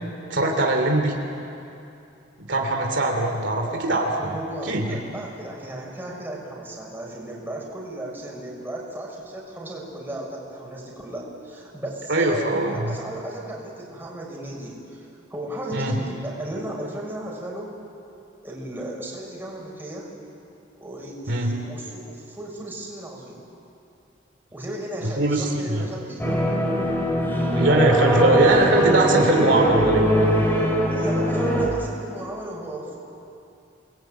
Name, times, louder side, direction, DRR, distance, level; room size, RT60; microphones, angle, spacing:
voice 1, 0.3-1.1 2.4-4.3 4.6-5.0 12.1-13.0 15.7-16.0 21.3-21.5 25.2-25.9 27.6-30.3, right 2 dB, 70° right, 2 dB, 2.8 m, -21 dB
voice 2, 4.1-17.7 18.4-20.1 20.8-23.4 24.5-26.3 30.9-33.0, right 1 dB, 10° right, -3 dB, 6.0 m, -35 dB
sound 1, 26.2-31.7, equal, 10° left, 4.0 m, -21 dB
29.0 x 21.0 x 9.1 m, 2.7 s
head